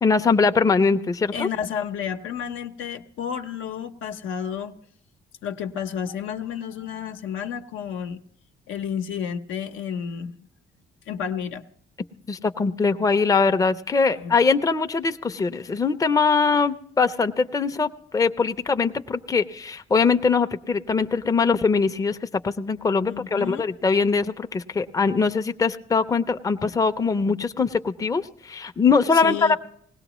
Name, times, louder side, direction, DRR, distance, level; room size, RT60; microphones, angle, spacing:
voice 1, 0.0-1.5 12.3-29.6, left 4 dB, 15° left, 8 dB, 0.5 m, -22 dB
voice 2, 1.3-4.8 5.4-8.2 8.7-10.4 11.1-11.6 14.1-14.4 23.1-23.7 29.2-29.6, left 8 dB, 85° left, 6 dB, 0.7 m, -31 dB
19.5 x 17.0 x 3.0 m, 0.64 s
cardioid pair, 90°, 20 cm